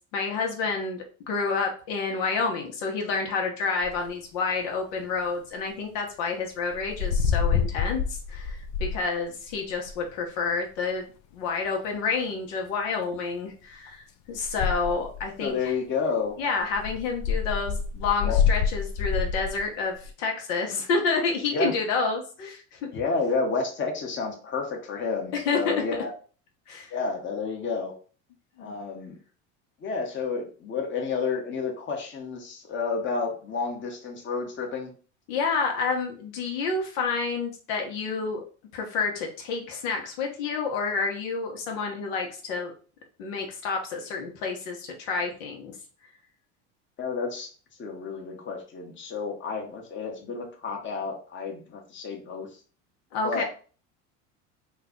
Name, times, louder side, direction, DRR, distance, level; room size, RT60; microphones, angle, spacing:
voice 1, 0.1-8.0 8.3-11.0 11.3-15.7 16.4-22.8 25.4-25.7 26.7-26.9 28.6-28.8 35.3-38.4 38.7-42.7 43.2-45.7 53.1-53.4, left 4 dB, 75° left, 1 dB, 1.0 m, -29 dB
sound 1, 3.8-4.1 6.7-9.0 9.5-10.0 14.3-15.3 16.6-19.7 20.0-20.1, left 6 dB, 50° left, 0.5 m, -27 dB
voice 2, 15.4-16.4 18.2-18.4 21.5-21.7 22.9-26.1 26.9-27.9 28.6-29.2 29.8-34.9 47.0-47.5 47.8-52.6 53.2-53.4, left 4 dB, 30° left, 1 dB, 1.0 m, -30 dB
3.2 x 2.3 x 3.8 m, 0.38 s
supercardioid pair, 95°, 36 cm